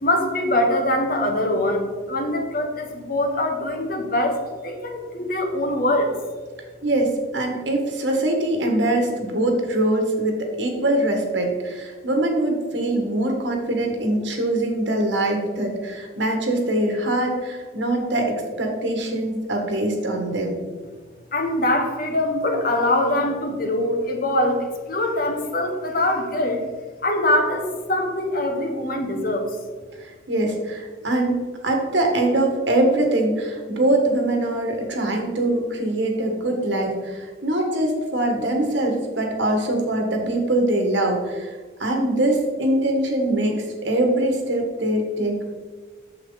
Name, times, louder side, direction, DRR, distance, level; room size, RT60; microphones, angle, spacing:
voice 1, 0.0-6.1 21.3-26.7 27.0-29.5, left 1 dB, 50° left, 3 dB, 1.3 m, -23 dB
voice 2, 6.8-20.6 30.0-31.4 31.6-45.5, right 1 dB, 75° right, 2 dB, 1.8 m, -23 dB
8.9 x 7.2 x 4.0 m, 1.5 s
head